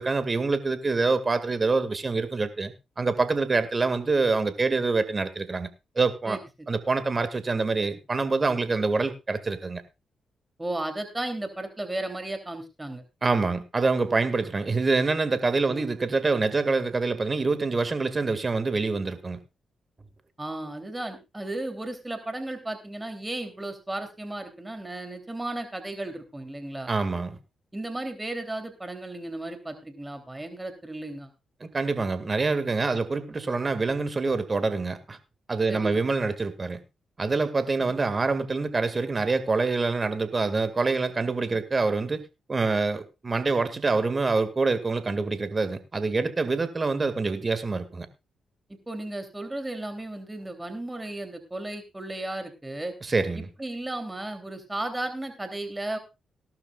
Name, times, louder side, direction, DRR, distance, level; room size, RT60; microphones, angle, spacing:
voice 1, 0.0-5.7 6.0-6.4 6.7-9.8 13.2-19.4 26.9-27.4 31.6-35.2 35.5-36.8 37.2-42.2 42.5-48.1 53.1-53.5, right 3 dB, 40° right, 11 dB, 2.1 m, -26 dB
voice 2, 6.2-6.7 10.6-13.0 15.7-15.9 20.4-26.9 27.7-31.3 35.7-36.0 37.8-37.9 41.5-41.6 48.7-52.9 53.3-56.0, right 1 dB, 20° right, 7 dB, 3.3 m, -35 dB
18.0 x 12.0 x 2.4 m, 0.26 s
hypercardioid pair, 40°, 0 cm